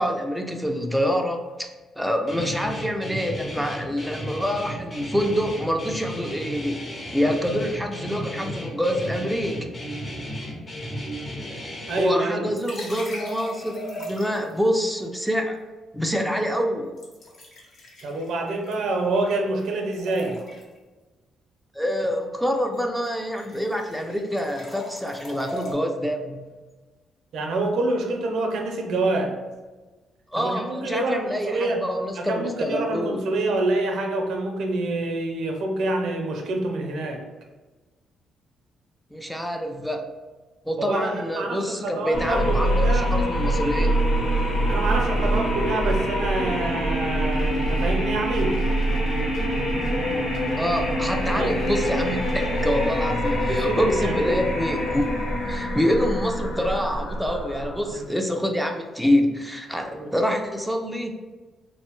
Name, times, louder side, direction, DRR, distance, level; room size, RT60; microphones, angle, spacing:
voice 1, 0.0-1.7 2.0-6.8 7.1-9.7 12.0-15.6 15.9-16.9 21.7-26.5 30.3-33.2 39.1-40.1 40.7-43.9 50.5-55.1 55.5-61.1, equal, ahead, 2 dB, 0.3 m, -26 dB
Guitar, 2.3-12.0, equal, 30° left, 0.8 m, -34 dB
voice 2, 11.9-12.5 18.0-20.4 27.3-29.3 30.3-31.8 32.2-37.2 40.8-43.1 44.7-48.6 51.3-51.6 53.5-54.4 57.9-58.1 59.9-60.1, right 2 dB, 75° right, 2 dB, 0.5 m, -26 dB
sound 1, 12.5-14.6 17.0-19.3 19.6-20.8 22.5-22.8 23.0-25.7, equal, 65° left, 1.0 m, -39 dB
sound 2, 42.1-58.0, equal, 85° left, 0.7 m, -24 dB
3.1 x 2.1 x 2.9 m, 1.2 s
cardioid pair, 90°, 0 cm